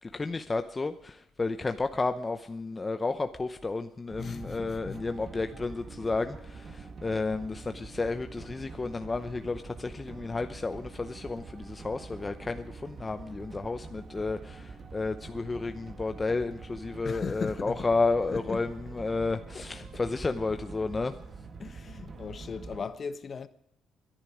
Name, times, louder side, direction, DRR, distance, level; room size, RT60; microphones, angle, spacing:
voice 1, 0.0-21.2, left 3 dB, 25° left, 0.8 m, -32 dB
sound 1, 4.1-22.9, right 4 dB, 45° right, 1.7 m, -45 dB
voice 2, 4.2-5.0 17.0-17.9 18.3-18.7 19.5-19.6 21.6-23.5, left 5 dB, 45° left, 1.1 m, -38 dB
22.5 x 10.5 x 5.0 m
supercardioid pair, 65°, 0 cm